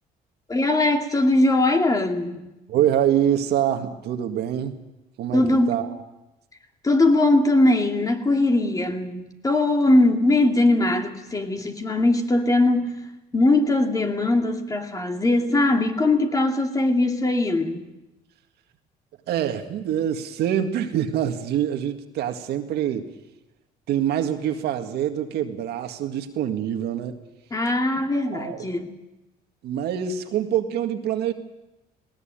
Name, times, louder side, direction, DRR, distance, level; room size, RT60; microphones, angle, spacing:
voice 1, 0.5-2.5 5.3-5.8 6.8-12.9 13.3-17.9 27.5-28.9, left 2 dB, 20° left, 4 dB, 2.4 m, -20 dB
voice 2, 2.7-4.8 5.2-5.9 19.3-23.1 23.9-27.2 28.3-28.7 29.6-31.3, right 10 dB, 75° right, 6 dB, 1.9 m, -25 dB
19.0 x 18.0 x 9.0 m, 0.99 s
cardioid pair, 110°, 17 cm